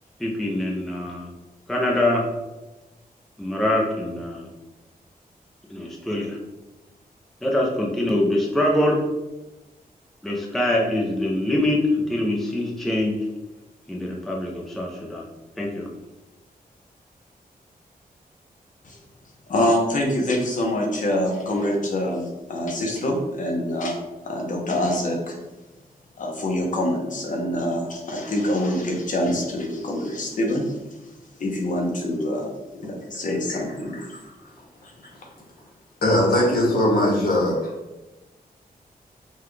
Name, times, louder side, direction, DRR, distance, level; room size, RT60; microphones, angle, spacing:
voice 1, 0.2-1.3 1.7-2.3 3.4-4.5 5.7-6.4 7.4-9.0 10.2-13.2 13.9-15.2 15.6-15.9, left 1 dB, ahead, -2 dB, 0.5 m, -24 dB
voice 2, 19.5-22.2 22.5-24.0 24.2-25.3 26.2-30.7 31.4-34.0, left 1 dB, 55° left, 0 dB, 0.9 m, -25 dB
voice 3, 36.0-37.7, left 1 dB, 75° left, -3 dB, 1.4 m, -20 dB
5.7 x 2.3 x 3.2 m, 1.1 s
wide cardioid pair, 170°, 16 cm